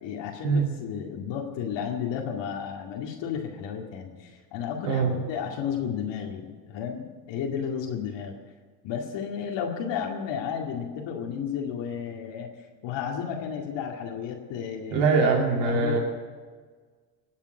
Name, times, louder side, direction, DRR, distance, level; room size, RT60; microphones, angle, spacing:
voice 1, 0.0-8.3 8.8-12.5 12.8-15.1 15.6-16.0, left 7 dB, 60° left, 1 dB, 2.3 m, -33 dB
voice 2, 4.8-5.2 14.9-16.0, right 4 dB, 70° right, -1 dB, 2.9 m, -23 dB
19.5 x 7.3 x 9.4 m, 1.5 s
hypercardioid pair, 75°, 49 cm